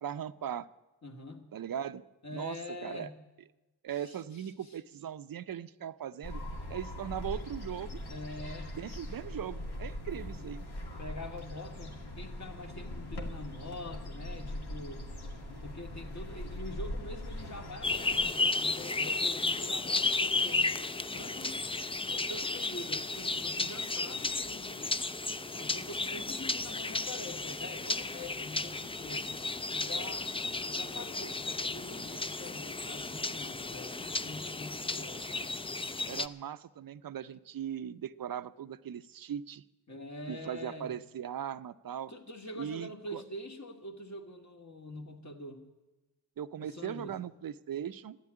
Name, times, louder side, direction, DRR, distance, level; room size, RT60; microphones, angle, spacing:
voice 1, 0.0-0.7 1.5-2.0 2.3-3.1 3.8-6.4 6.7-8.0 8.7-10.7 36.1-39.6 40.3-42.1 42.6-43.2 46.4-48.2, right 9 dB, 55° right, 14 dB, 0.6 m, -39 dB
voice 2, 1.0-1.4 2.2-3.2 3.9-4.8 8.1-8.7 10.1-10.4 11.0-15.1 15.6-20.7 21.1-21.6 22.1-24.9 25.4-29.3 29.7-30.3 30.7-35.5 39.9-40.9 42.1-45.7 46.6-47.2, left 2 dB, 45° left, 3 dB, 2.0 m, -45 dB
sound 1, 6.2-18.3, left 1 dB, 70° left, 2.3 m, -41 dB
sound 2, 17.8-36.3, left 3 dB, 15° left, 0.4 m, -33 dB
12.0 x 9.5 x 9.8 m, 1.1 s
cardioid pair, 60°, 41 cm